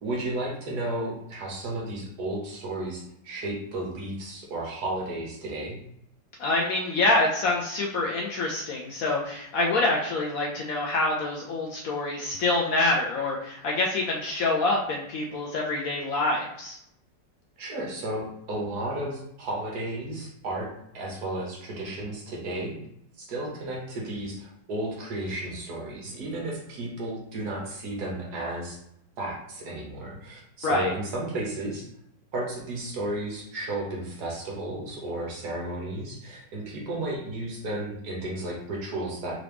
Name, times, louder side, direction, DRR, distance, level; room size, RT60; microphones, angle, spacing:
voice 1, 0.0-5.8 17.6-22.8 23.2-28.8 29.2-31.9 32.3-39.4, right 1 dB, 65° right, -2 dB, 1.5 m, -33 dB
voice 2, 6.4-16.8 30.6-30.9, left 2 dB, 70° left, -1 dB, 0.9 m, -26 dB
3.8 x 3.0 x 3.4 m, 0.76 s
omnidirectional pair, 1.9 m